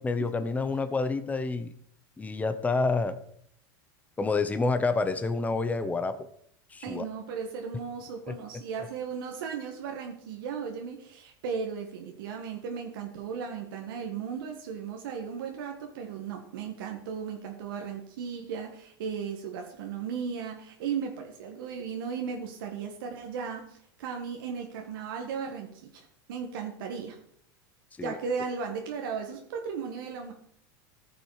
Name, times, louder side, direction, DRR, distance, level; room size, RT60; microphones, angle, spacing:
voice 1, 0.0-1.7 2.2-3.2 4.2-6.2 6.7-7.1 8.3-8.4 28.0-28.2, left 3 dB, 15° left, 10 dB, 0.8 m, -28 dB
voice 2, 6.8-27.2 28.0-30.3, right 6 dB, 80° right, 2 dB, 1.6 m, -36 dB
14.0 x 6.1 x 4.9 m, 0.66 s
supercardioid pair, 115°, 11 cm